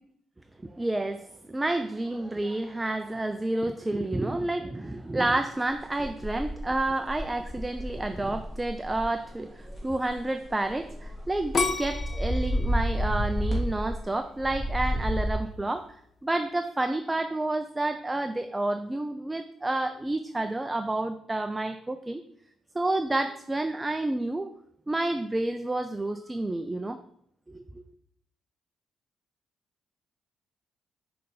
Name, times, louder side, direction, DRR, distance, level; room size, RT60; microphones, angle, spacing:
voice 1, 0.7-15.9 16.2-22.2 22.7-24.5 24.9-27.0 27.5-27.8, right 2 dB, 15° right, 8 dB, 0.4 m, -29 dB
sound 1, 5.7-9.1 9.6-9.8 10.0-14.0 14.4-15.3, equal, 10° left, 2.2 m, -31 dB
sound 2, 11.5-14.5 15.0-15.5, left 4 dB, 45° left, 0.7 m, -33 dB
5.8 x 3.8 x 5.4 m, 0.70 s
cardioid pair, 90°, 0 cm